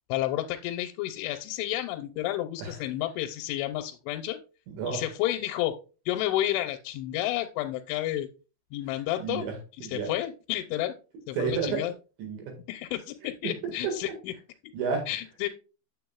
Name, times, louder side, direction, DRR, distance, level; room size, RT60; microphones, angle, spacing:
voice 1, 0.1-4.4 4.8-5.8 6.1-8.3 8.7-9.5 9.9-10.9 11.3-11.9 12.7-14.3 15.1-15.5, left 14 dB, 85° left, 5 dB, 3.0 m, -31 dB
voice 2, 4.7-5.1 9.2-10.1 11.4-11.8 12.2-12.5 13.4-13.5 13.8-14.0 14.7-15.1, right 5 dB, 70° right, 3 dB, 3.9 m, -31 dB
9.2 x 7.4 x 2.3 m, 0.33 s
omnidirectional pair, 5.5 m